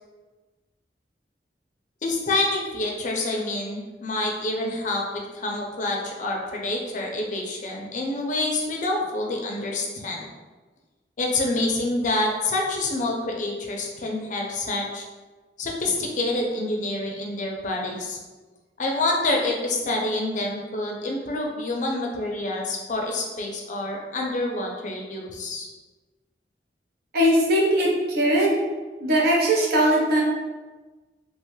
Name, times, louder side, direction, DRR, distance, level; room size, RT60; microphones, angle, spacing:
voice 1, 2.0-10.3 11.2-15.1 15.6-18.2 18.8-25.7, left 2 dB, 45° left, 0 dB, 0.5 m, -27 dB
voice 2, 27.1-28.6 29.0-30.2, right 1 dB, 60° right, -3 dB, 0.7 m, -20 dB
2.8 x 2.2 x 3.1 m, 1.2 s
head